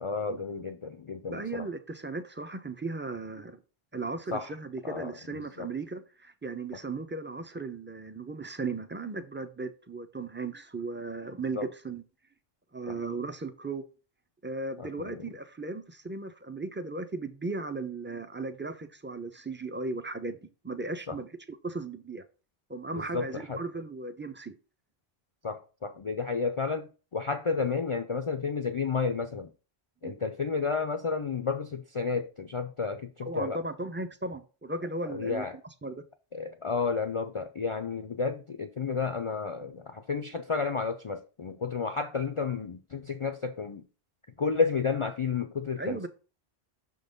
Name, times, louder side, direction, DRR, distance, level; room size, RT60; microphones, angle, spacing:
voice 1, 0.0-1.7 4.3-4.5 4.8-5.7 11.5-11.7 12.9-13.0 14.8-15.3 21.1-21.2 22.9-23.6 25.4-29.5 30.0-33.6 35.1-35.6 36.3-43.8 44.4-46.1, left 5 dB, 45° left, 0.4 m, -31 dB
voice 2, 1.3-3.6 3.9-12.0 12.7-13.8 14.4-22.2 22.7-24.5 30.0-30.1 33.3-35.5 35.8-36.0 45.8-46.1, right 3 dB, 15° right, 0.4 m, -36 dB
6.1 x 3.9 x 5.2 m
omnidirectional pair, 1.1 m